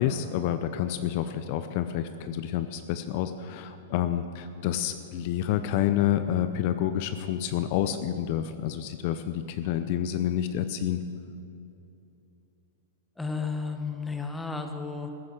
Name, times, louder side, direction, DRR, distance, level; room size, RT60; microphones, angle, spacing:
voice 1, 0.0-11.0, left 11 dB, 50° left, 10 dB, 0.7 m, -28 dB
voice 2, 13.2-15.1, left 4 dB, 5° left, 5 dB, 1.3 m, -33 dB
15.5 x 9.9 x 6.6 m, 2.8 s
hypercardioid pair, 125°, 0 cm